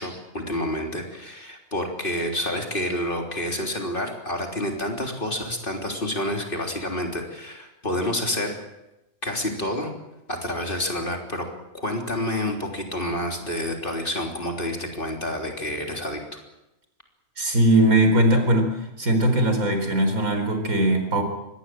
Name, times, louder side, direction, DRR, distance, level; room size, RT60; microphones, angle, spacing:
voice 1, 0.0-8.5 9.2-9.9 10.3-11.5 11.7-16.2, left 1 dB, 35° left, 2 dB, 3.7 m, -28 dB
voice 2, 17.4-18.7 19.0-21.2, right 1 dB, 75° right, 5 dB, 4.7 m, -20 dB
24.0 x 19.5 x 7.7 m, 0.93 s
omnidirectional pair, 1.5 m